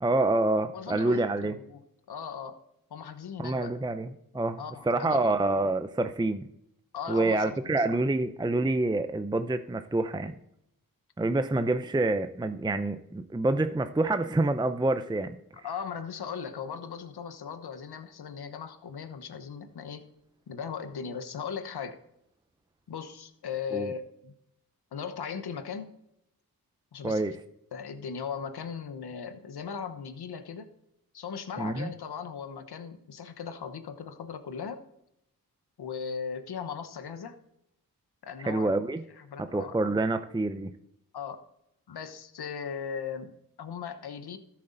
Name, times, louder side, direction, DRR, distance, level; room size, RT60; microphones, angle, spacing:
voice 1, 0.0-1.5 3.4-4.6 4.9-6.5 7.1-10.3 11.2-15.4 23.7-23.9 27.0-27.3 31.6-31.9 38.4-39.0 39.4-40.7, right 2 dB, 10° right, 9 dB, 0.6 m, -27 dB
voice 2, 0.7-1.8 2.1-2.6 2.9-3.8 4.6-5.3 6.9-8.0 15.6-20.1 20.5-22.0 22.9-24.3 24.9-26.0 26.9-27.4 27.7-30.7 31.1-34.8 35.8-37.4 38.2-38.7 39.1-40.0 41.1-41.4 41.9-44.4, left 6 dB, 85° left, 9 dB, 1.1 m, -38 dB
13.0 x 7.6 x 3.9 m, 0.78 s
cardioid pair, 55°, 38 cm